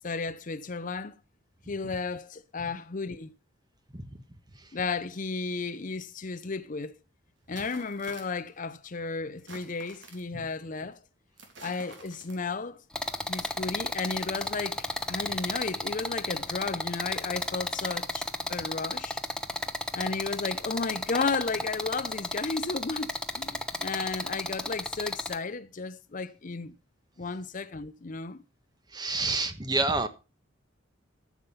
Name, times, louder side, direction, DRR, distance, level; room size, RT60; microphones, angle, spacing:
voice 1, 0.0-1.2 1.7-3.3 4.7-6.9 7.5-11.0 11.6-12.8 13.3-19.2 19.9-26.7 27.2-28.4, left 4 dB, 45° left, 0.7 m, -33 dB
sound 1, 6.4-6.5 7.4-8.6 9.4-10.4 11.4-12.7 13.3-13.5, right 3 dB, 65° right, 3.5 m, -50 dB
sound 2, 12.9-25.3, left 1 dB, 5° left, 1.0 m, -33 dB
voice 2, 28.9-30.1, right 3 dB, 20° right, 1.4 m, -28 dB
14.0 x 7.3 x 5.6 m
head